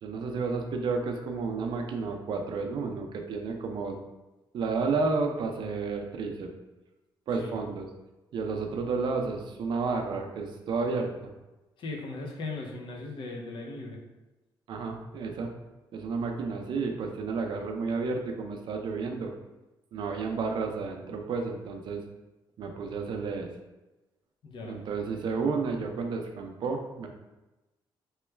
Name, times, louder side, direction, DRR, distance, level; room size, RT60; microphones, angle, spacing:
voice 1, 0.0-4.0 4.5-6.5 7.3-7.9 8.3-11.1 14.7-15.5 15.9-19.3 19.9-22.0 22.6-23.5 24.6-27.1, right 4 dB, 65° right, 3 dB, 0.4 m, -31 dB
voice 2, 11.8-14.0 24.4-24.8, left 3 dB, 70° left, 1 dB, 0.6 m, -38 dB
3.0 x 2.2 x 3.2 m, 1.1 s
cardioid pair, 120°, 9 cm